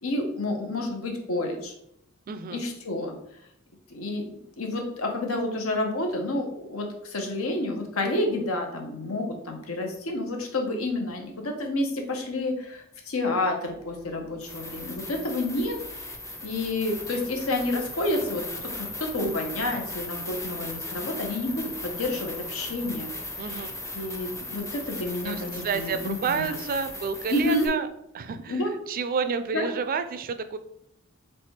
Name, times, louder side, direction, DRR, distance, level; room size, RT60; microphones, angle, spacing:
voice 1, 0.0-1.7 2.5-3.2 3.9-16.1 16.4-18.4 18.8-23.1 23.4-26.6 27.3-27.7 28.5-28.7 29.5-29.7, left 2 dB, 90° left, 2 dB, 0.9 m, -29 dB
voice 2, 2.3-2.6 23.4-23.7 25.2-27.9 28.1-30.6, right 5 dB, 45° right, 10 dB, 0.3 m, -30 dB
sound 1, 13.7-13.8 14.4-27.7, left 2 dB, 15° left, 0.5 m, -37 dB
3.4 x 3.3 x 4.2 m, 0.76 s
head